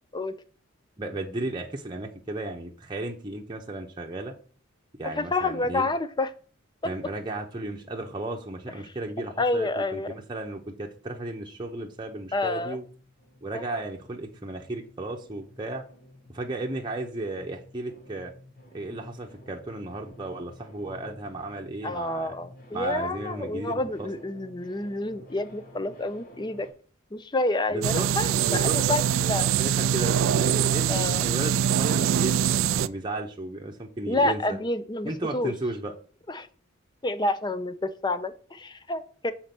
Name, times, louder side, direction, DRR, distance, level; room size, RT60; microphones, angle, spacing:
voice 1, 1.0-4.3 5.0-5.9 6.8-12.8 13.4-15.8 16.3-18.3 18.7-22.3 22.7-24.1 27.7-28.1 28.4-29.0 29.4-34.6 35.0-35.9, right 2 dB, 20° right, 1 dB, 0.8 m, -34 dB
voice 2, 5.2-6.3 9.4-10.1 12.3-12.8 13.5-13.8 21.8-26.7 27.1-29.5 30.9-31.2 34.1-35.5 36.3-36.5 37.0-39.3, left 2 dB, 20° left, 12 dB, 0.6 m, -29 dB
sound 1, 11.8-26.7, left 1 dB, 45° left, 2.0 m, -52 dB
sound 2, 27.8-32.9, right 9 dB, 75° right, 0.3 m, -23 dB
6.7 x 4.3 x 5.9 m, 0.41 s
head